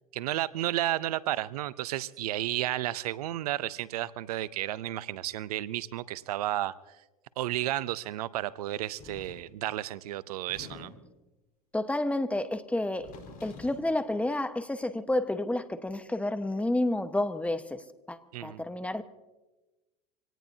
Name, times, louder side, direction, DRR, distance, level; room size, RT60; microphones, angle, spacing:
voice 1, 0.1-6.7 7.4-10.9 18.3-18.6, right 14 dB, 80° right, 0.6 m, -32 dB
sound 1, 9.0-9.5 10.3-11.2 12.8-13.9, left 4 dB, 50° left, 4.6 m, -48 dB
voice 2, 11.7-13.1 13.4-19.0, left 1 dB, 5° left, 1.2 m, -30 dB
26.0 x 18.0 x 2.8 m
hypercardioid pair, 85°, 19 cm